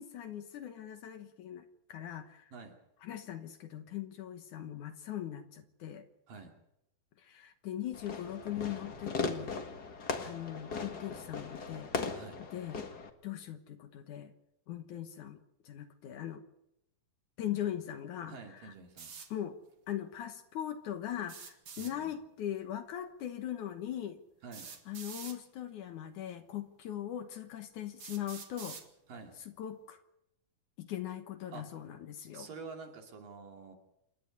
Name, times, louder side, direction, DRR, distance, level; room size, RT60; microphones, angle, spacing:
voice 1, 0.0-2.5 3.0-6.1 7.2-9.6 10.2-11.9 12.5-12.8 13.2-14.3 14.7-16.4 17.4-18.7 19.3-19.6 19.9-24.2 24.9-28.8 29.4-30.0 30.8-32.5, left 11 dB, 65° left, 8 dB, 2.4 m, -40 dB
Fireworks, 7.9-13.1, left 4 dB, 40° left, 1.5 m, -38 dB
voice 2, 18.3-19.1 21.8-22.1 24.4-24.7 29.1-29.4 31.5-31.7 32.3-33.8, right 4 dB, 70° right, 3 dB, 4.5 m, -48 dB
sound 1, 19.0-19.3 21.2-21.9 23.4-23.5 24.5-25.4 26.4-26.5 27.1-27.2 28.0-28.9, right 6 dB, 45° right, 2.3 m, -47 dB
28.0 x 11.5 x 9.5 m, 0.82 s
omnidirectional pair, 4.2 m